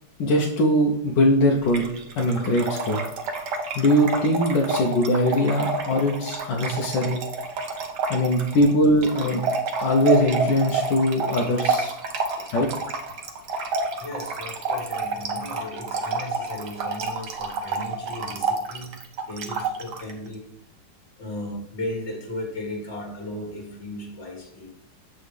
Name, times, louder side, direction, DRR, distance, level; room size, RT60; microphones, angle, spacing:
voice 1, 0.2-1.9 2.1-3.0 3.7-7.2 8.1-9.4 9.8-11.9 12.5-12.7, equal, 75° left, -1 dB, 1.5 m, -21 dB
Trickle dribble / Fill (with liquid), 1.6-20.1, right 3 dB, 70° right, 1.5 m, -29 dB
voice 2, 14.0-19.0 19.3-20.7 21.2-24.7, left 1 dB, 40° left, 0 dB, 2.1 m, -36 dB
7.8 x 4.7 x 3.3 m, 0.79 s
omnidirectional pair, 2.0 m